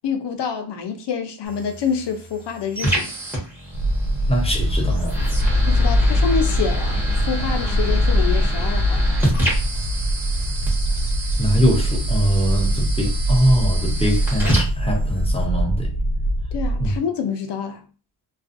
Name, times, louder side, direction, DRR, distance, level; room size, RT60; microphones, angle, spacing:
voice 1, 0.0-3.1 5.6-9.0 16.5-17.8, left 6 dB, 60° left, 0.6 m, -27 dB
sound 1, 1.4-15.4, right 1 dB, 5° right, 0.8 m, -29 dB
sound 2, 3.7-17.0, right 1 dB, 60° right, 0.6 m, -23 dB
voice 2, 4.3-5.3 11.4-15.9 16.8-16.9, equal, 15° left, 0.4 m, -22 dB
sound 3, 4.4-12.8, left 2 dB, 90° right, 0.9 m, -24 dB
2.4 x 2.3 x 2.5 m
wide cardioid pair, 150°, 48 cm